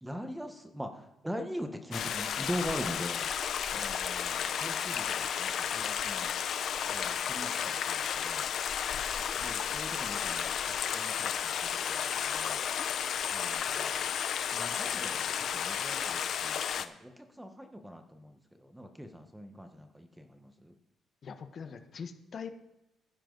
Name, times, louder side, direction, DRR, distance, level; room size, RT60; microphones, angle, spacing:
voice 1, 0.0-3.3 3.7-6.3 6.9-8.5 9.4-12.6 13.3-14.1 14.5-20.7, equal, 5° right, 6 dB, 1.3 m, -42 dB
Stream, 1.9-16.9, left 8 dB, 65° left, 0.8 m, -33 dB
voice 2, 8.9-9.5 21.2-22.5, left 6 dB, 50° left, 8 dB, 1.3 m, -44 dB
15.0 x 9.8 x 4.1 m, 0.91 s
cardioid pair, 90°, 0 cm